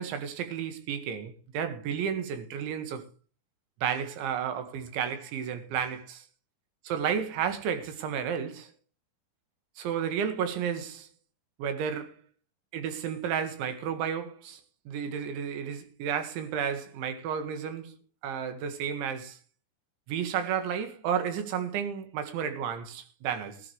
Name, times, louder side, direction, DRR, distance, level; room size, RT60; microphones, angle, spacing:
voice 1, 0.0-3.1 3.8-6.3 6.9-8.7 9.8-11.1 11.6-12.2 12.7-14.6 14.9-18.0 18.2-19.4 20.1-23.6, right 8 dB, 85° right, 4.1 m, -32 dB
17.5 x 12.0 x 3.2 m
omnidirectional pair, 5.2 m